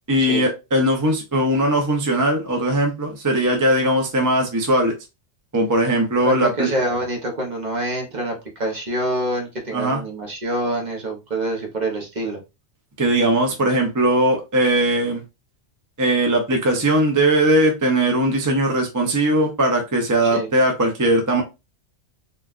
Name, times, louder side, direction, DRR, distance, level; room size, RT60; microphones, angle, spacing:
voice 1, 0.1-4.9 5.5-6.7 9.7-10.0 13.0-15.2 16.0-21.4, right 1 dB, 25° right, 0.5 m, -19 dB
voice 2, 6.2-12.4 20.3-20.5, right 1 dB, 45° right, 0.9 m, -26 dB
3.9 x 2.3 x 2.4 m
omnidirectional pair, 1.2 m